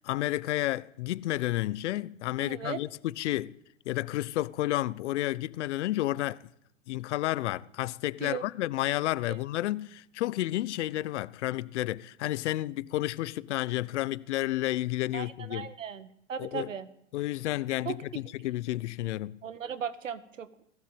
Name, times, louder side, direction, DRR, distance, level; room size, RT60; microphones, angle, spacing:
voice 1, 0.0-3.5 3.8-6.4 6.9-15.7 16.4-16.7 17.1-19.4, left 16 dB, 65° left, 1.0 m, -31 dB
voice 2, 2.4-2.8 8.2-8.4 9.3-9.4 15.1-16.9 17.9-18.2 19.4-20.5, right 7 dB, 85° right, 1.9 m, -37 dB
19.5 x 15.5 x 9.2 m
hypercardioid pair, 95°, 37 cm